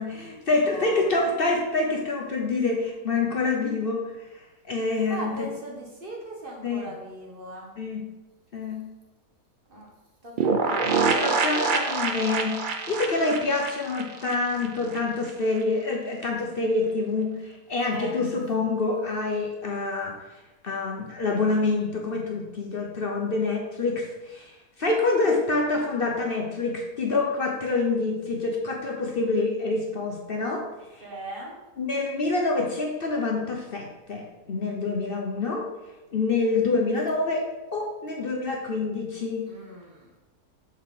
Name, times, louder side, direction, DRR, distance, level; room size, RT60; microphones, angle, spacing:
voice 1, 0.0-4.0 4.6-5.5 6.6-6.8 7.8-8.1 8.5-8.8 11.2-12.6 12.9-20.1 20.6-30.6 31.0-31.1 31.8-35.6 36.1-37.5 37.7-39.5, left 3 dB, 45° left, 0 dB, 0.8 m, -26 dB
voice 2, 0.6-1.1 5.1-7.7 9.7-9.9 10.2-11.2 17.9-18.1 31.0-31.6 39.5-40.2, right 1 dB, 40° right, -1 dB, 1.2 m, -38 dB
sound 1, 10.4-15.0 15.3-15.4 15.6-15.7, right 4 dB, 80° right, 0.4 m, -26 dB
6.5 x 4.6 x 3.7 m, 1.1 s
omnidirectional pair, 1.6 m